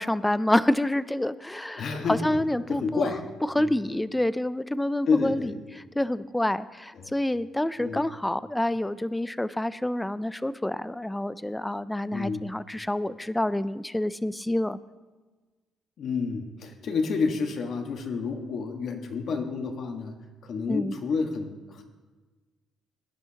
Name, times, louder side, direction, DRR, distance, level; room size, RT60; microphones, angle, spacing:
voice 1, 0.0-3.1 3.5-5.5 6.0-14.8 20.7-20.9, left 1 dB, 10° left, 16 dB, 0.4 m, -27 dB
voice 2, 1.8-2.4 2.7-3.3 3.5-3.7 5.1-5.5 6.9-7.1 7.8-8.1 12.1-12.4 16.0-20.1 20.4-21.8, left 4 dB, 60° left, 4 dB, 1.6 m, -29 dB
18.0 x 10.5 x 2.9 m, 1.3 s
cardioid pair, 105°, 0 cm